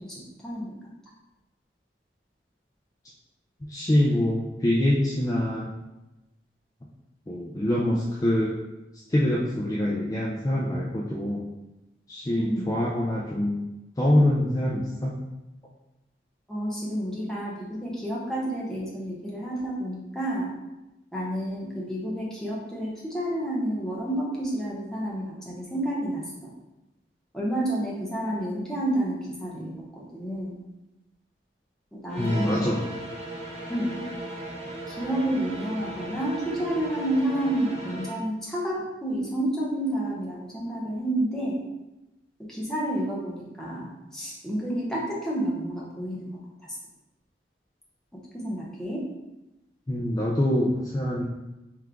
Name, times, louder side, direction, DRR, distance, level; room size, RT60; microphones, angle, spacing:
voice 1, 0.1-0.7 12.4-12.7 16.5-20.5 21.1-26.5 27.3-30.5 31.9-32.7 33.7-34.0 34.9-41.6 42.5-43.9 44.1-46.4 48.4-49.0, right 1 dB, 5° left, -6 dB, 0.8 m, -30 dB
voice 2, 3.6-5.7 7.3-8.6 9.1-11.5 12.1-13.6 14.0-15.1 32.2-32.9 49.9-51.2, left 1 dB, 20° left, -4 dB, 0.4 m, -25 dB
sound 1, 32.1-38.2, right 1 dB, 35° right, 1.2 m, -37 dB
3.4 x 3.1 x 3.7 m, 0.99 s
head